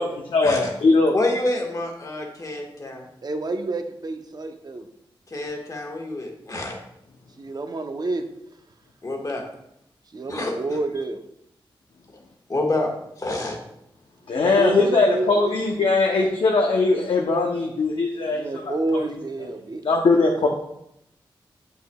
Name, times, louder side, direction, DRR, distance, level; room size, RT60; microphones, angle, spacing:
voice 1, 0.3-1.2 14.3-19.1 19.8-20.5, left 3 dB, 75° left, 0 dB, 0.7 m, -20 dB
voice 2, 1.1-3.0 5.3-6.8 9.0-9.4 10.3-10.5 12.5-12.9 13.2-13.6, left 2 dB, 40° left, 1 dB, 1.4 m, -27 dB
voice 3, 3.2-4.9 7.4-8.2 10.1-11.2 14.3-15.7 18.3-19.8, right 2 dB, 45° right, 6 dB, 0.7 m, -28 dB
7.6 x 5.7 x 2.3 m, 0.78 s
cardioid pair, 65°, 9 cm